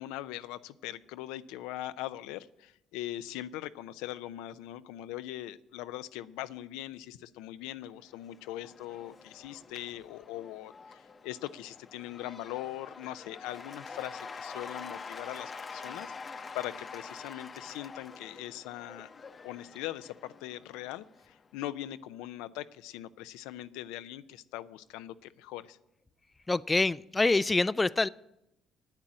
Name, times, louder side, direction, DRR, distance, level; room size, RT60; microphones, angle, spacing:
voice 1, 0.0-19.1 19.4-25.8, left 14 dB, 80° left, 13 dB, 0.5 m, -41 dB
Cheering / Applause / Crowd, 8.0-21.5, left 4 dB, 35° left, 0.8 m, -46 dB
voice 2, 26.5-28.1, left 3 dB, 20° left, 18 dB, 0.4 m, -26 dB
9.4 x 8.9 x 8.7 m, 0.85 s
supercardioid pair, 65°, 0 cm